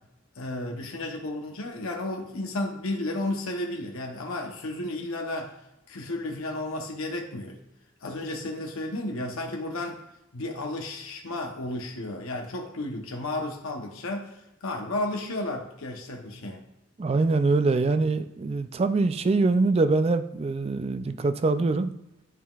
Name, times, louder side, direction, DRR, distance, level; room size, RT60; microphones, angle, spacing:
voice 1, 0.4-5.5 5.9-7.6 8.0-10.0 10.3-16.6, left 2 dB, 80° left, 2 dB, 0.8 m, -33 dB
voice 2, 17.0-21.9, right 3 dB, 30° right, 11 dB, 0.3 m, -24 dB
11.0 x 3.7 x 2.4 m, 0.90 s
head